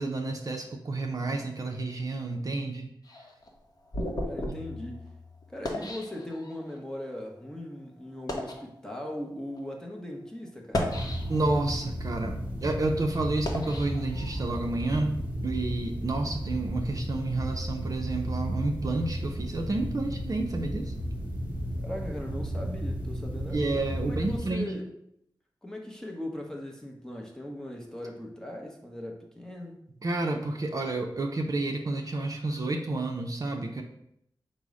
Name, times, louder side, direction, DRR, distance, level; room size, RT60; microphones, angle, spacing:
voice 1, 0.0-2.9 11.3-15.1 15.4-20.9 23.5-24.7 30.0-33.8, right 2 dB, 45° right, 1 dB, 0.5 m, -30 dB
sound 1, 3.0-6.8 7.5-7.6 8.1-8.7 9.4-9.6 10.5-11.6 12.1-14.7, left 1 dB, 45° left, 0.7 m, -35 dB
voice 2, 4.2-5.1 5.5-10.9 21.8-24.9 25.6-29.8, left 1 dB, 5° left, 0 dB, 0.7 m, -39 dB
sound 2, 10.8-24.5, equal, 20° right, 1.0 m, -34 dB
5.3 x 2.0 x 4.8 m, 0.74 s
wide cardioid pair, 115°, 8 cm